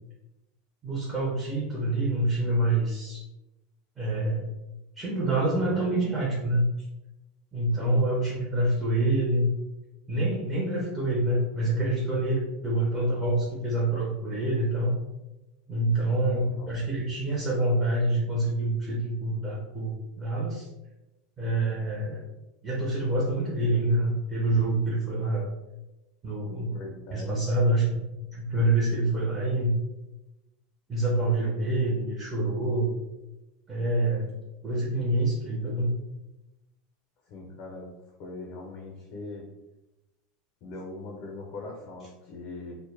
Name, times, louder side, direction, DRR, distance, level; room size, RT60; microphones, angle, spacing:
voice 1, 0.8-3.2 4.0-4.5 5.0-6.7 7.5-9.5 10.1-14.9 15.7-20.7 21.4-22.2 22.6-25.5 26.2-26.7 27.1-27.8 28.3-29.8 30.9-32.9 33.7-34.3 34.6-35.9, right 1 dB, 15° right, -5 dB, 0.5 m, -26 dB
voice 2, 5.5-6.0 7.8-8.0 16.3-16.7 26.7-27.4 37.3-37.9 38.2-39.5 40.6-42.8, left 2 dB, 50° left, 0 dB, 0.5 m, -40 dB
2.1 x 2.1 x 3.1 m, 0.99 s
supercardioid pair, 150°, 0 cm